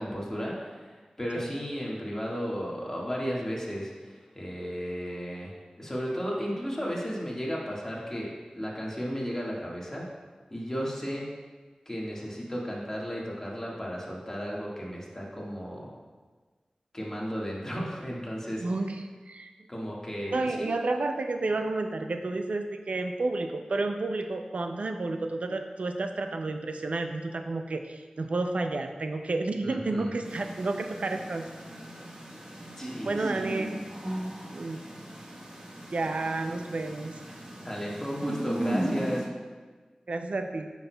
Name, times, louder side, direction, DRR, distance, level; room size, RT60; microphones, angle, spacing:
voice 1, 0.0-10.0 10.5-11.2 11.8-15.9 16.9-18.6 19.7-20.8 29.6-30.1 32.8-33.5 37.6-39.2, equal, 20° left, -4 dB, 1.7 m, -34 dB
voice 2, 18.6-19.5 20.3-31.5 33.1-33.8 34.5-34.8 35.9-37.2 40.1-40.7, right 2 dB, 70° right, 6 dB, 0.4 m, -31 dB
sound 1, 30.2-39.3, right 1 dB, 45° right, 1.2 m, -36 dB
9.0 x 6.1 x 2.3 m, 1.4 s
wide cardioid pair, 50°, 2 cm